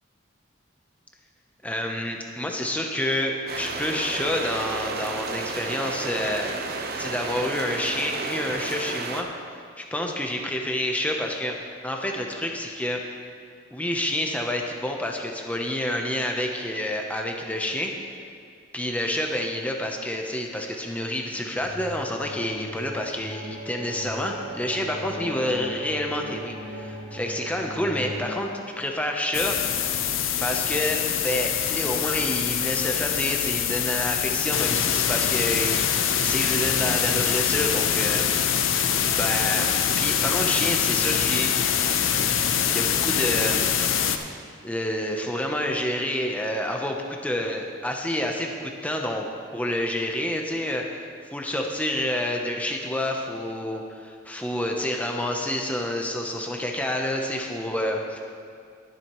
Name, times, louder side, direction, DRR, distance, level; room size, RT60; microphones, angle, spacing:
voice 1, 1.6-6.5 7.0-9.3 9.8-13.0 13.7-17.9 18.7-28.5 28.8-29.6 30.4-38.8 39.1-39.7 40.0-41.5 42.7-43.7 44.6-49.3 49.5-58.0, left 1 dB, 5° left, 1 dB, 0.8 m, -28 dB
sound 1, 3.5-9.2, right 3 dB, 50° right, 0.8 m, -32 dB
sound 2, 21.5-28.4, equal, 90° right, 2.3 m, -38 dB
sound 3, 29.3-44.2, left 8 dB, 75° left, 0.7 m, -24 dB
20.0 x 7.7 x 3.1 m, 2.3 s
head